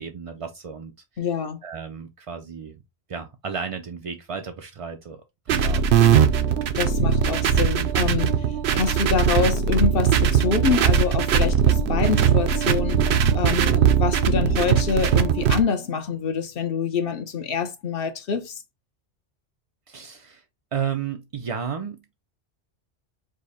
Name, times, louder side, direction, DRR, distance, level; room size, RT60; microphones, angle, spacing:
voice 1, 0.0-1.3 1.6-2.8 3.1-6.3 19.9-20.4 20.7-22.2, right 7 dB, 55° right, 0.4 m, -33 dB
voice 2, 1.2-1.6 6.7-8.3 8.7-13.1 13.3-18.5, left 6 dB, 60° left, 0.9 m, -26 dB
sound 1, 5.5-15.6, right 7 dB, 70° right, 0.8 m, -20 dB
5.1 x 2.1 x 4.0 m
omnidirectional pair, 1.1 m